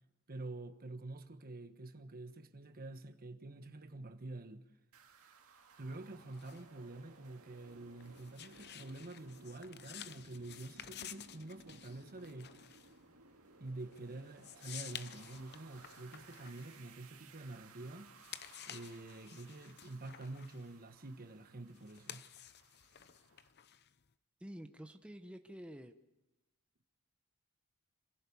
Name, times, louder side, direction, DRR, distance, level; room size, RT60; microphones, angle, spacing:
voice 1, 0.3-4.7 5.8-12.5 13.6-18.1 18.7-22.2, right 2 dB, 45° right, 1.3 m, -47 dB
sound 1, 4.9-23.5, right 4 dB, 75° right, 2.2 m, -61 dB
sound 2, 5.9-17.6 18.0-24.1, left 10 dB, 50° left, 0.8 m, -53 dB
sound 3, 7.4-21.5, right 2 dB, 25° right, 4.0 m, -76 dB
voice 2, 24.4-25.9, equal, 5° right, 1.0 m, -49 dB
26.5 x 16.0 x 7.2 m
head